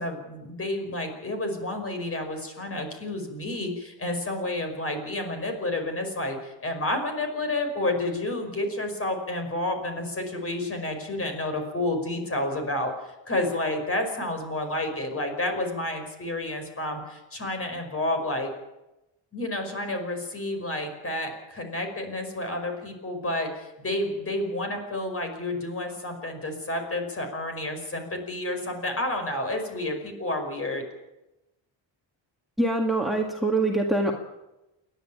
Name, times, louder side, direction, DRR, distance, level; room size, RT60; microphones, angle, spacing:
voice 1, 0.0-18.5 19.3-30.8, left 1 dB, 30° left, 5 dB, 5.4 m, -30 dB
voice 2, 32.6-34.1, right 2 dB, ahead, 2 dB, 1.9 m, -24 dB
29.0 x 11.5 x 8.7 m, 0.98 s
cardioid pair, 130°, 45 cm